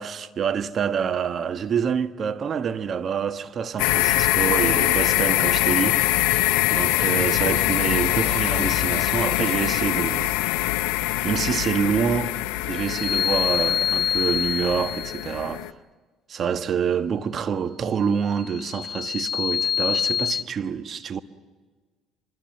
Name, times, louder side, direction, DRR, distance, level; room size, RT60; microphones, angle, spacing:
voice 1, 0.0-6.4 6.7-10.3 11.2-12.4 12.7-15.7 16.3-21.2, right 7 dB, 50° right, 1.3 m, -26 dB
sound 1, 3.8-15.7, left 16 dB, 80° left, 0.7 m, -23 dB
sound 2, 12.8-15.4 18.3-20.4, left 9 dB, 45° left, 0.7 m, -26 dB
25.0 x 22.5 x 7.8 m
hypercardioid pair, 65°, 0 cm